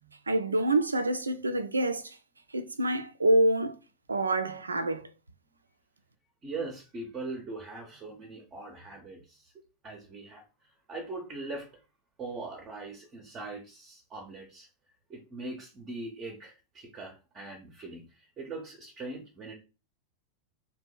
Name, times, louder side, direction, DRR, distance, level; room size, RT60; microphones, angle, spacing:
voice 1, 0.3-2.2 2.5-3.8 4.1-5.1, right 1 dB, 75° right, 0.4 m, -26 dB
voice 2, 6.4-9.5 9.8-10.4 10.9-11.7 12.2-14.7 15.1-19.5, right 3 dB, 25° right, 0.6 m, -41 dB
2.8 x 2.2 x 3.8 m
figure-of-eight pair, 90°, 0 cm